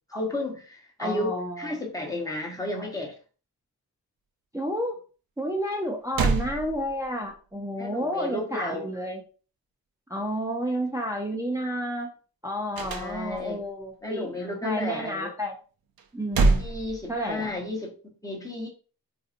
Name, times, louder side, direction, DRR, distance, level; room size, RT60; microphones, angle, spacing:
voice 1, 0.1-3.1 7.8-8.9 12.9-13.6 14.0-15.3 16.6-17.9 18.2-18.7, left 2 dB, 10° left, 0 dB, 1.0 m, -32 dB
voice 2, 1.0-1.8 4.5-5.0 5.4-9.2 10.1-12.1 12.4-15.6 16.1-16.6 17.1-17.5, equal, 10° right, 1 dB, 0.5 m, -31 dB
sound 1, 5.7-5.8 6.1-7.3 12.7-13.6 16.0-17.6, right 3 dB, 70° right, 0.6 m, -26 dB
3.9 x 2.7 x 2.5 m, 0.38 s
wide cardioid pair, 95°, 37 cm